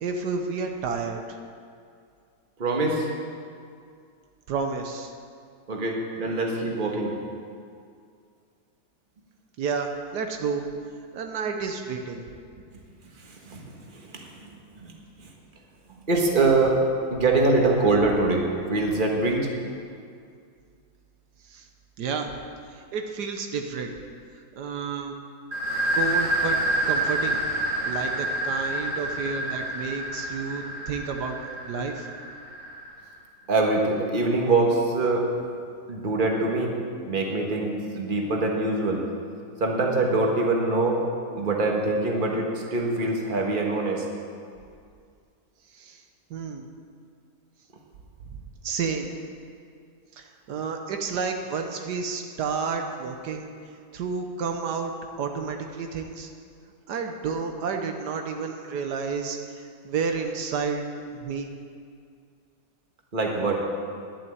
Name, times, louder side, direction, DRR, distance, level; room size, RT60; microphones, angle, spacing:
voice 1, 0.0-1.4 4.5-5.1 9.6-10.7 11.1-12.2 21.5-21.7 22.0-22.3 22.7-23.9 24.6-25.1 25.9-26.6 26.9-27.4 27.8-31.4 31.6-32.1 45.7-46.0 46.3-46.6 48.6-49.1 50.2-53.5 53.9-54.9 55.2-56.3 56.9-60.9 61.1-61.5, right 5 dB, 80° right, 4 dB, 1.5 m, -30 dB
voice 2, 2.6-3.1 5.7-7.2 13.2-13.6 13.9-14.5 14.7-14.9 15.2-15.3 16.1-16.8 17.1-19.5 33.5-35.3 35.9-36.7 37.1-39.0 39.6-41.0 41.3-44.0 63.1-63.6, right 2 dB, 30° right, 0 dB, 1.6 m, -24 dB
sound 1, 25.5-33.0, right 1 dB, 50° right, 2.5 m, -28 dB
11.5 x 7.5 x 9.0 m, 2.3 s
omnidirectional pair, 1.7 m